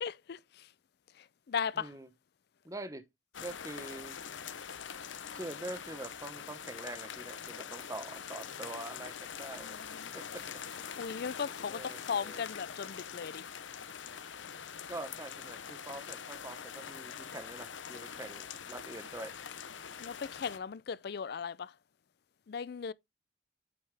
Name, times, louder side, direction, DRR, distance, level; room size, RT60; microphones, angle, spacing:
voice 1, 0.0-0.7 1.2-1.9 9.6-10.1 11.0-13.4 20.0-21.7 22.5-22.9, left 6 dB, 55° left, 0.4 m, -37 dB
voice 2, 1.8-2.1 2.6-3.0 3.4-4.1 5.3-9.7 10.1-10.5 11.7-12.4 14.9-19.3, right 2 dB, 15° right, 0.9 m, -44 dB
sound 1, 3.3-20.6, left 7 dB, 80° left, 0.8 m, -44 dB
8.7 x 5.4 x 3.4 m
head